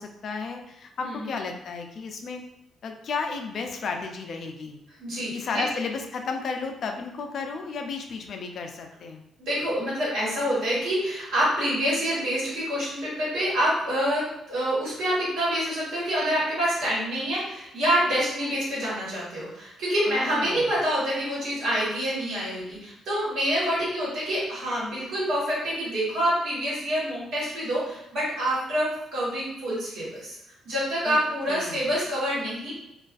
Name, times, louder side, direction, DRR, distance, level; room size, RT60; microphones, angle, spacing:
voice 1, 0.0-2.4 2.8-4.8 5.3-9.2 20.1-20.7 31.1-31.2 31.5-31.9, left 4 dB, 60° left, 4 dB, 0.3 m, -33 dB
voice 2, 1.0-1.3 5.0-5.6 9.4-30.4 30.6-32.7, equal, 75° right, -7 dB, 1.4 m, -27 dB
2.4 x 2.3 x 2.4 m, 0.85 s
cardioid pair, 90°, 0 cm